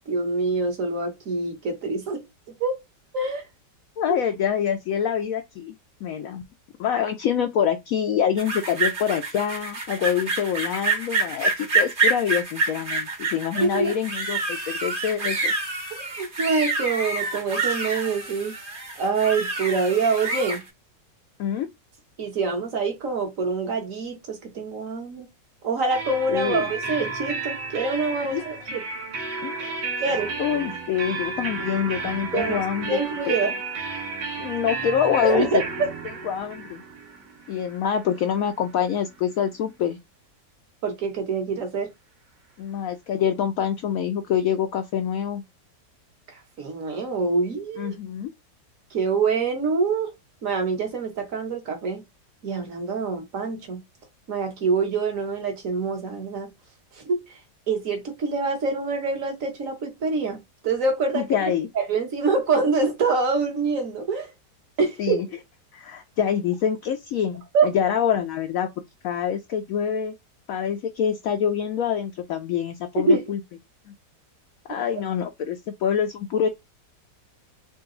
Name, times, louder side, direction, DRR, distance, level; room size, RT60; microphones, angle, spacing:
voice 1, 0.1-2.2 2.6-2.8 3.1-3.4 13.5-13.9 15.9-18.6 19.0-20.6 22.2-25.3 25.6-28.8 30.0-30.3 32.3-32.6 32.9-33.5 35.3-35.6 40.8-41.9 46.6-47.9 48.9-50.1 50.4-52.0 52.4-53.8 54.3-56.5 57.0-57.2 57.7-60.4 60.6-61.2 61.7-64.3 64.8-65.2 67.5-67.7 72.9-73.2 74.7-74.8, right 4 dB, 50° right, 1.6 m, -25 dB
voice 2, 4.0-5.7 6.0-6.4 6.8-15.5 21.4-21.7 26.3-26.7 28.3-28.5 29.4-29.8 30.4-33.0 33.3-33.4 34.4-35.6 36.2-36.8 37.5-40.0 42.6-45.4 47.8-48.3 61.1-61.7 65.0-65.3 65.7-68.7 69.0-70.1 70.5-73.4 73.9-74.0 74.7-76.5, left 8 dB, 70° left, 0.8 m, -26 dB
sound 1, 8.4-20.6, right 3 dB, 35° right, 1.2 m, -27 dB
sound 2, 25.9-39.5, right 4 dB, 85° right, 1.6 m, -33 dB
3.8 x 2.3 x 3.8 m
omnidirectional pair, 1.8 m